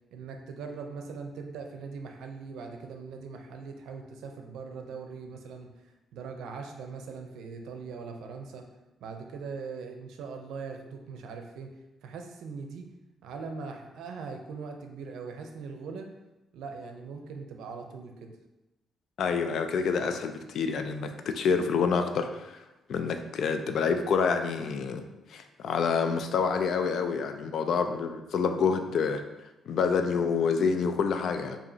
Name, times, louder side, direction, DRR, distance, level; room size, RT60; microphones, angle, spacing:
voice 1, 0.1-8.6 9.0-12.8 13.2-16.1 16.5-18.3, right 5 dB, 80° right, 4 dB, 0.5 m, -41 dB
voice 2, 19.2-22.6 22.9-25.0 25.3-29.2 29.7-31.6, left 5 dB, 65° left, 7 dB, 0.4 m, -27 dB
4.8 x 2.7 x 2.7 m, 1.0 s
cardioid pair, 90°, 0 cm